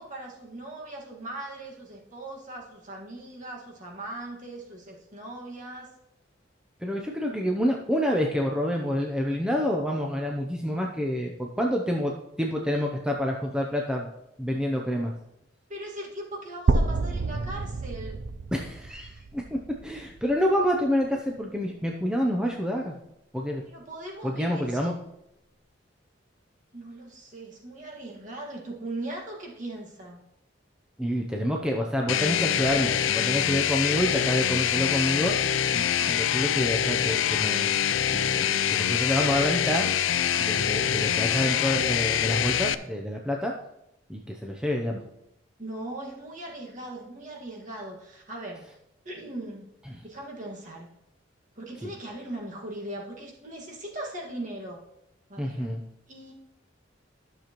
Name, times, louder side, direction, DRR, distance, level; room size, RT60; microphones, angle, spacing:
voice 1, 0.0-5.9 15.7-18.2 23.7-24.9 26.7-30.2 36.0-36.3 45.6-48.7 49.0-49.7 50.0-50.9 51.6-54.8 55.3-55.8 56.1-56.3, right 1 dB, 40° right, -1 dB, 1.8 m, -39 dB
voice 2, 6.8-14.1 14.4-15.1 18.5-22.9 23.3-23.6 24.2-24.9 31.0-35.3 35.7-37.7 38.1-39.9 40.3-43.5 44.1-45.0 49.9-50.0 51.8-51.9 55.4-55.8, equal, 5° right, 0 dB, 0.6 m, -28 dB
sound 1, 16.7-20.6, right 3 dB, 60° right, 0.5 m, -29 dB
sound 2, 32.1-42.7, left 9 dB, 80° left, 0.4 m, -25 dB
12.0 x 6.7 x 3.0 m, 0.83 s
head